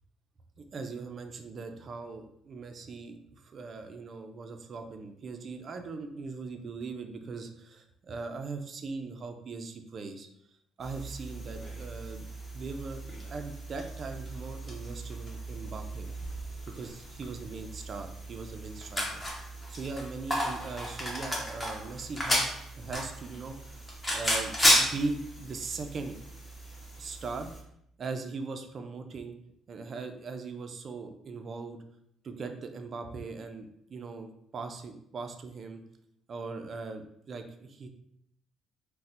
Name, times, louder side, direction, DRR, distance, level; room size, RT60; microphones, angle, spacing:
voice 1, 0.6-10.3 10.8-12.3 12.5-13.0 13.3-16.1 16.7-19.2 19.7-23.8 24.1-24.5 24.8-26.2 27.0-27.5 28.0-29.4 29.7-31.8 32.2-35.8 36.3-37.9, right 4 dB, 35° right, 6 dB, 0.3 m, -40 dB
sound 1, 10.8-27.6, equal, 10° left, 0.6 m, -33 dB
4.0 x 2.0 x 2.5 m, 0.75 s
cardioid pair, 145°, 0 cm